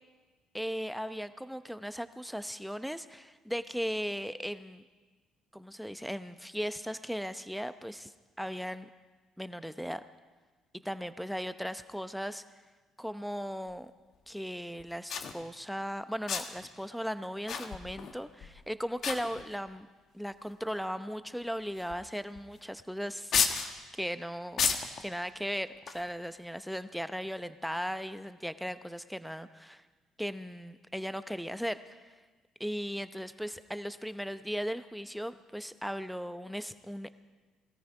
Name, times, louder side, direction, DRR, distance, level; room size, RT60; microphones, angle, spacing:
voice 1, 0.5-4.8 5.5-8.1 8.4-8.9 9.4-10.0 10.8-12.4 13.0-13.9 14.3-19.9 20.1-23.3 23.9-24.6 25.0-29.8 30.2-32.1 32.6-37.1, equal, ahead, 12 dB, 0.8 m, -37 dB
sound 1, 13.7-13.8 14.8-14.9 15.1-15.3 16.3-16.7 17.5-18.1 18.4-18.6 19.0-19.7 20.5-20.6 21.8-22.0 22.3-22.4 23.3-23.7 24.6-25.0 25.8-26.1, left 6 dB, 55° left, 1.2 m, -31 dB
19.5 x 14.0 x 4.9 m, 1.3 s
hypercardioid pair, 60°, 0 cm